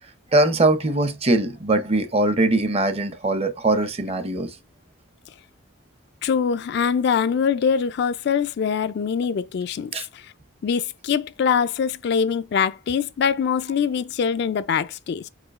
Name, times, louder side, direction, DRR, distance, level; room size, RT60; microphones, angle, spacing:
voice 1, 0.3-4.5 9.9-10.1, right 2 dB, 30° right, 0.6 m, -21 dB
voice 2, 6.2-10.2 10.6-15.3, left 6 dB, 55° left, 0.3 m, -23 dB
4.9 x 4.5 x 2.4 m
head